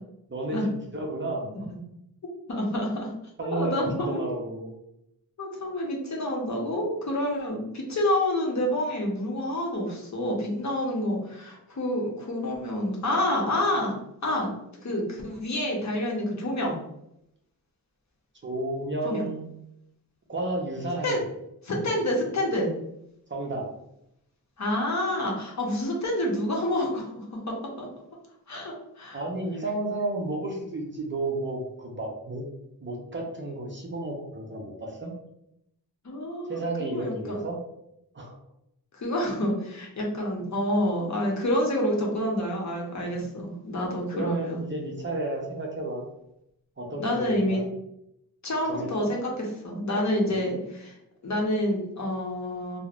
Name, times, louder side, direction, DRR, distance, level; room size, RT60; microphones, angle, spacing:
voice 1, 0.3-1.7 3.4-3.8 4.1-4.7 18.4-19.4 20.3-21.2 23.3-23.7 29.1-32.5 32.8-35.1 36.5-37.6 38.1-38.3 44.1-46.0 46.8-47.6 48.7-49.1 50.2-50.3, right 2 dB, 30° right, -1 dB, 0.5 m, -32 dB
voice 2, 2.5-3.1 3.5-4.2 5.4-13.9 14.2-14.5 14.8-16.8 19.0-19.3 21.0-21.2 21.7-22.7 24.6-27.9 28.5-29.2 36.0-37.4 38.9-44.6 47.0-47.6 48.4-51.0 51.2-52.8, left 1 dB, 50° left, -1 dB, 0.7 m, -28 dB
3.0 x 2.0 x 2.4 m, 0.80 s
wide cardioid pair, 100°, 37 cm